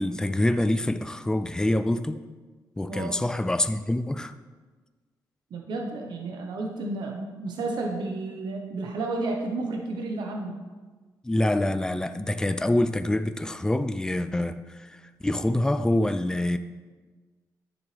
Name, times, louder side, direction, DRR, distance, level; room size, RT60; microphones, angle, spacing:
voice 1, 0.0-2.2 2.8-4.3 11.2-16.6, left 1 dB, 10° left, 10 dB, 0.4 m, -26 dB
voice 2, 2.9-3.2 5.5-10.6, right 2 dB, 75° right, 1 dB, 1.2 m, -32 dB
11.5 x 7.1 x 3.4 m, 1.3 s
cardioid pair, 105°, 7 cm